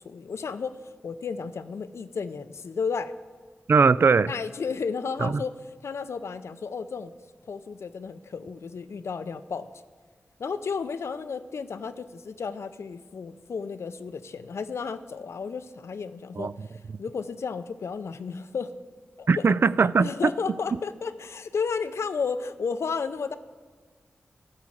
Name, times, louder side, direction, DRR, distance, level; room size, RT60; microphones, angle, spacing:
voice 1, 0.0-3.1 4.3-5.6 5.8-7.1 7.5-9.7 10.4-18.7 19.2-19.5 20.0-23.4, left 5 dB, 75° left, 12 dB, 0.5 m, -33 dB
voice 2, 3.7-4.3 5.2-5.3 16.4-16.7 19.3-20.1, right 5 dB, 55° right, 17 dB, 0.3 m, -20 dB
13.0 x 4.8 x 7.5 m, 1.5 s
cardioid pair, 50°, 5 cm